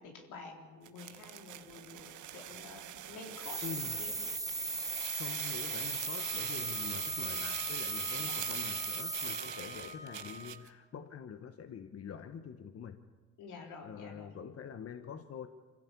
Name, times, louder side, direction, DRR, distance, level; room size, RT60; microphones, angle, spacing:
voice 1, 0.0-4.2 4.6-4.8 8.1-8.4 13.4-14.4, left 4 dB, 85° left, 2 dB, 4.2 m, -50 dB
sound 1, 0.8-10.7, right 12 dB, 80° right, 1.2 m, -44 dB
sound 2, 3.3-9.8, right 3 dB, 10° right, 1.2 m, -37 dB
voice 2, 3.6-4.0 5.2-13.0 13.8-15.5, left 7 dB, 50° left, 9 dB, 1.2 m, -45 dB
Wind instrument woodwind instrument, 6.0-10.7, left 6 dB, 20° left, 2.6 m, -50 dB
25.0 x 15.5 x 8.4 m, 1.4 s
cardioid pair, 90°, 30 cm